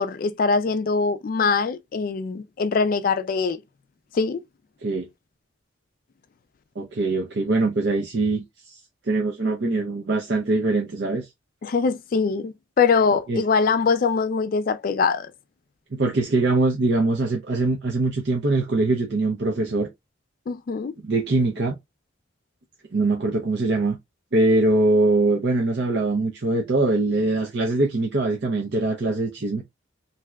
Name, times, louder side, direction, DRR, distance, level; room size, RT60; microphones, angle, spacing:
voice 1, 0.0-3.6 4.1-4.4 11.6-15.3 20.5-20.9, left 5 dB, 45° left, 0.3 m, -22 dB
voice 2, 6.8-8.8 9.1-11.3 13.3-13.4 15.9-19.9 21.0-21.7 22.9-24.0 24.3-29.6, right 2 dB, 60° right, 0.6 m, -22 dB
3.3 x 2.7 x 2.3 m
head